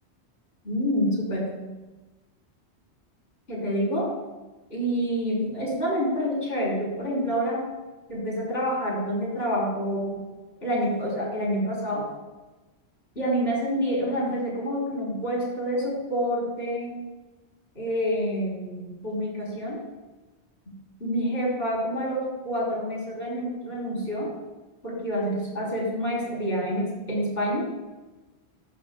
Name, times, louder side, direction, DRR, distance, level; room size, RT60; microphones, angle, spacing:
voice 1, 0.6-1.6 3.5-4.1 4.7-7.7 8.1-10.2 10.6-12.1 13.2-17.1 17.8-19.8 20.7-20.8 21.0-24.3 24.8-27.7, equal, 60° left, -5 dB, 4.0 m, -27 dB
14.0 x 11.5 x 2.2 m, 1.2 s
omnidirectional pair, 1.2 m